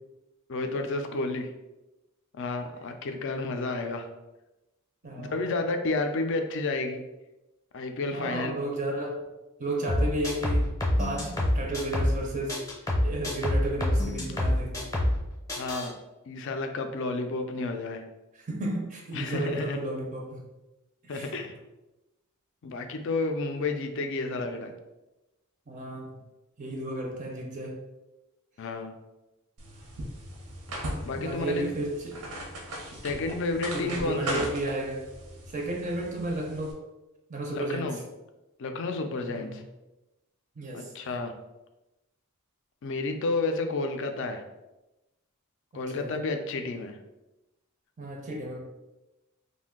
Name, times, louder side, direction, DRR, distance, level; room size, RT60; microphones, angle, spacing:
voice 1, 0.5-1.5 2.3-4.1 5.2-7.0 7.7-8.6 15.5-15.9 16.3-18.0 19.1-19.8 21.1-21.5 22.6-24.7 28.6-28.9 31.0-31.7 33.0-34.5 37.5-38.0 38.6-39.6 40.7-41.3 42.8-44.4 45.7-47.0, left 3 dB, 55° left, 6 dB, 0.4 m, -31 dB
voice 2, 5.0-5.5 8.1-9.2 9.6-12.6 13.0-14.9 18.3-20.4 21.0-21.5 25.7-26.1 26.6-27.8 31.1-32.2 33.7-35.1 35.5-36.8 37.3-38.0 39.3-39.6 40.6-40.9 45.7-46.2 48.0-48.6, right 1 dB, 35° right, 1 dB, 0.4 m, -33 dB
sound 1, 9.9-12.2 12.5-15.2 15.5-15.9, left 1 dB, 15° left, 0.6 m, -26 dB
sound 2, 29.6-36.7, right 1 dB, 90° right, 0.7 m, -38 dB
2.5 x 2.2 x 3.6 m, 1.0 s
head